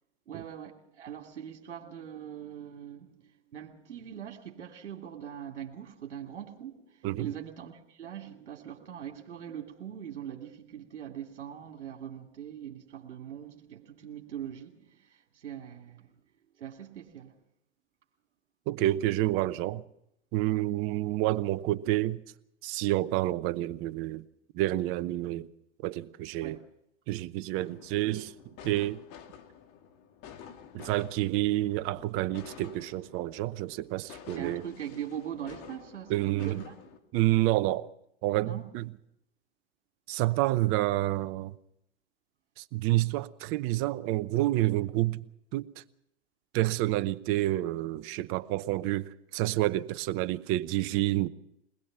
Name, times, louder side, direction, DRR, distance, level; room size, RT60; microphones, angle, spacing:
voice 1, 0.3-16.1 16.6-17.4 26.4-26.6 34.3-36.7 38.4-38.7, right 10 dB, 80° right, 2.5 m, -42 dB
voice 2, 18.7-19.8 20.3-22.2 22.6-24.2 24.5-25.5 25.8-26.6 27.1-29.0 30.7-34.6 36.1-36.6 37.1-37.9 38.2-38.9 40.1-41.5 42.6-45.3 45.5-45.8 46.5-51.3, right 16 dB, 40° right, 0.9 m, -29 dB
sound 1, 27.6-37.0, left 8 dB, 40° left, 2.4 m, -50 dB
22.0 x 20.5 x 5.7 m
hypercardioid pair, 115°, 35 cm